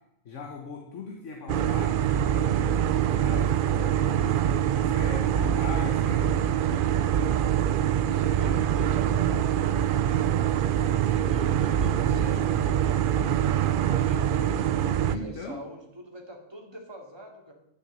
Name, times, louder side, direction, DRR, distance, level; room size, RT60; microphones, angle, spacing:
voice 1, 0.3-2.5 3.1-4.4 4.7-6.9 7.7-7.9 8.2-8.7 15.1-15.6, left 3 dB, 65° left, 2 dB, 1.7 m, -40 dB
sound 1, 1.5-15.2, right 10 dB, 65° right, 0.5 m, -24 dB
voice 2, 8.0-13.6 13.9-17.5, right 1 dB, 20° right, 1 dB, 2.5 m, -43 dB
sound 2, 9.3-14.5, equal, 50° left, 3.7 m, -44 dB
10.0 x 7.3 x 8.8 m, 0.81 s
omnidirectional pair, 1.4 m